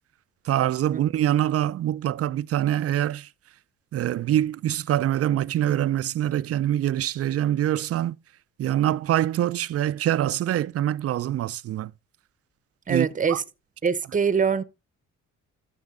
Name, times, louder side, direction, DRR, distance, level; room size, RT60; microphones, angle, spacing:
voice 1, 0.5-3.3 3.9-8.2 8.6-11.9 12.9-13.4, right 12 dB, 50° right, 0.4 m, -24 dB
voice 2, 12.9-13.4 13.8-14.6, right 6 dB, 25° right, 0.8 m, -23 dB
13.0 x 6.2 x 3.7 m
cardioid pair, 90°, 30 cm